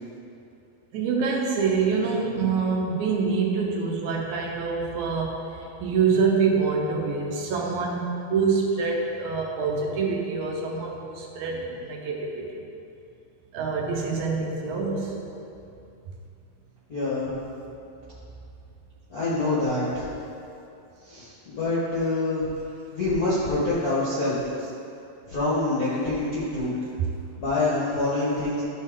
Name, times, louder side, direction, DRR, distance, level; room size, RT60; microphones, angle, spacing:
voice 1, 0.9-12.6 13.5-15.1, right 5 dB, 75° right, -1 dB, 2.1 m, -26 dB
voice 2, 16.9-17.3 19.1-20.0 21.0-22.5 22.9-24.5 25.3-26.7 27.4-28.6, left 2 dB, 50° left, -9 dB, 1.1 m, -26 dB
12.5 x 4.3 x 3.7 m, 2.7 s
omnidirectional pair, 3.6 m